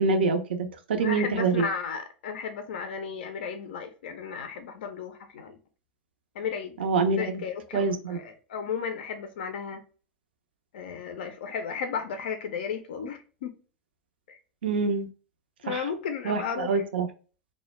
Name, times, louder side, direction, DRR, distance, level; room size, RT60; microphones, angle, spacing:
voice 1, 0.0-1.7 6.8-7.4 7.7-8.2 14.6-15.1 15.7-15.9 16.2-17.1, right 4 dB, 75° right, 0.4 m, -26 dB
voice 2, 1.0-5.6 6.4-6.8 7.2-9.8 10.7-13.6 14.3-14.4 15.6-16.8, left 6 dB, 70° left, 0.4 m, -34 dB
2.1 x 2.1 x 2.9 m
hypercardioid pair, 90°, 6 cm